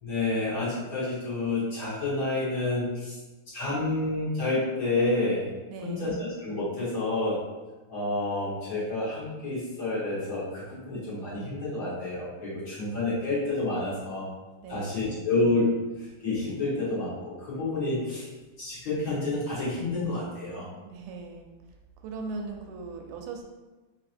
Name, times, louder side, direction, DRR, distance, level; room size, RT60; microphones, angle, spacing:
voice 1, 0.0-3.1 3.5-5.5 5.8-7.4 7.9-14.3 14.7-15.7 16.0-18.2 18.6-20.7, left 2 dB, 65° left, -10 dB, 0.8 m, -29 dB
voice 2, 5.7-6.1 14.6-15.2 20.8-21.5 22.0-23.4, right 4 dB, 85° right, 2 dB, 2.0 m, -39 dB
4.9 x 2.8 x 2.5 m, 1.2 s
omnidirectional pair, 3.5 m